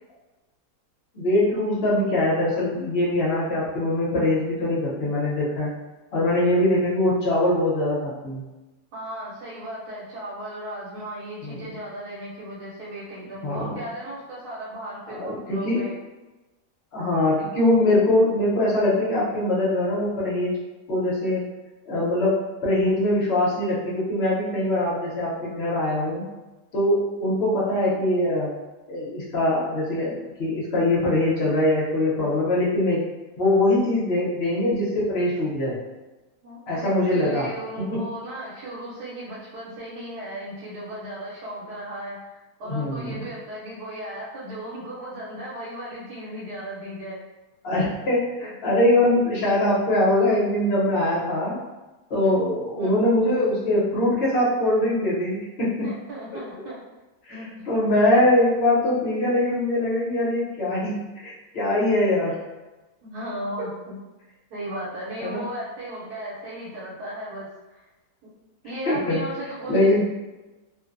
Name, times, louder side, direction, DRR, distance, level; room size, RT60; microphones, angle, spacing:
voice 1, 1.1-5.7 6.1-8.4 11.4-11.7 13.4-13.8 15.1-15.4 15.6-15.8 16.9-20.6 20.9-21.5 21.9-26.2 26.7-28.5 28.9-33.0 33.4-35.8 36.7-37.5 37.9-38.0 42.6-43.3 47.6-51.6 52.1-55.9 57.3-57.4 57.7-62.4 65.2-65.4 68.9-69.2 69.7-70.0, left 1 dB, 50° left, -6 dB, 0.9 m, -22 dB
voice 2, 8.9-16.0 36.4-42.2 42.6-47.2 48.4-48.5 52.3-52.4 52.8-53.0 55.8-56.8 57.3-57.5 63.0-64.0 64.5-67.9 68.6-70.0, right 1 dB, 80° right, -7 dB, 1.2 m, -36 dB
2.6 x 2.1 x 2.5 m, 1.1 s
omnidirectional pair, 1.6 m